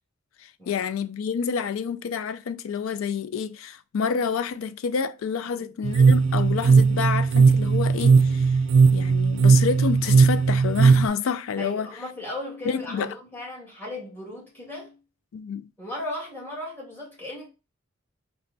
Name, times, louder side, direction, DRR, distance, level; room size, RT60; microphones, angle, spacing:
voice 1, 0.4-8.5 8.9-11.9 12.7-13.1 15.3-15.7, left 6 dB, 85° left, 0.3 m, -28 dB
sound 1, 5.8-11.1, right 5 dB, 65° right, 0.4 m, -18 dB
voice 2, 11.6-15.0 15.8-17.5, left 1 dB, 10° left, 1.7 m, -36 dB
4.3 x 2.2 x 3.9 m
head